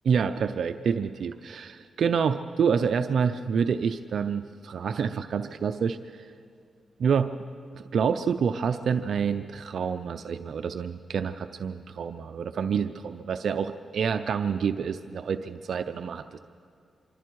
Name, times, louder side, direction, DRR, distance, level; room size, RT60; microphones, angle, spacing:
voice 1, 0.0-6.3 7.0-7.3 7.7-16.4, right 6 dB, 70° right, 9 dB, 0.6 m, -27 dB
26.0 x 24.0 x 4.7 m, 2.3 s
cardioid pair, 80°, 0 cm